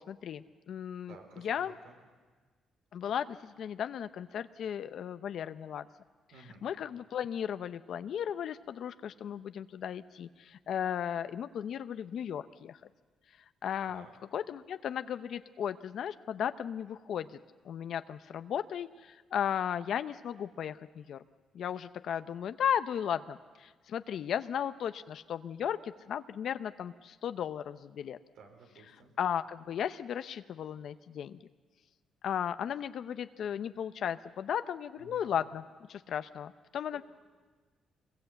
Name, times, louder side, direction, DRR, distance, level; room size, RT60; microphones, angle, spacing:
voice 1, 0.0-1.2 1.4-1.7 2.9-5.9 6.6-12.8 13.6-14.1 14.3-17.3 17.6-21.2 21.5-28.2 29.2-31.4 32.2-37.0, left 9 dB, 65° left, 11 dB, 0.7 m, -35 dB
voice 2, 1.1-1.9 6.3-6.6 13.9-14.1 28.3-29.1 35.0-35.3 36.9-37.0, right 4 dB, 85° right, 4 dB, 4.6 m, -54 dB
25.0 x 21.5 x 8.1 m, 1.4 s
cardioid pair, 90°, 0 cm